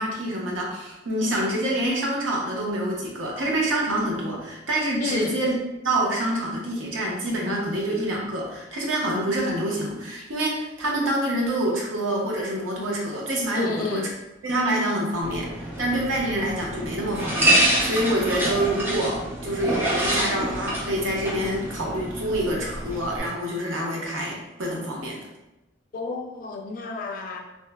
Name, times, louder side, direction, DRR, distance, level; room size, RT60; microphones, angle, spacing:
voice 1, 0.0-5.5 5.8-14.1 14.4-25.3, right 1 dB, 90° right, -2 dB, 0.7 m, -26 dB
voice 2, 5.0-5.4 13.5-14.1 25.9-27.4, left 3 dB, 45° left, 2 dB, 0.3 m, -30 dB
sound 1, 15.2-23.2, right 1 dB, 10° right, 0.5 m, -26 dB
2.9 x 2.0 x 2.2 m, 0.96 s
head